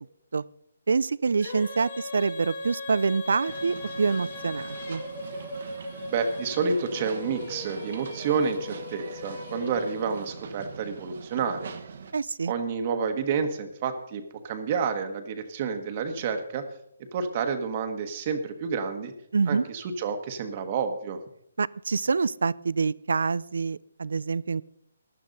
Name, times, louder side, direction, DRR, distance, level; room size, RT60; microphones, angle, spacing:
voice 1, 0.9-5.0 12.1-12.5 19.3-19.6 21.6-24.6, right 4 dB, 75° right, 22 dB, 0.4 m, -26 dB
Female singing, 1.4-10.6, left 2 dB, 50° left, 5.9 m, -38 dB
sound 1, 3.5-12.1, right 6 dB, 55° right, 1.2 m, -43 dB
voice 2, 6.1-11.7 12.5-16.6 17.1-19.1 19.5-21.2, right 5 dB, 35° right, 7 dB, 1.3 m, -29 dB
15.5 x 11.0 x 4.0 m, 0.74 s
hypercardioid pair, 155°, 0 cm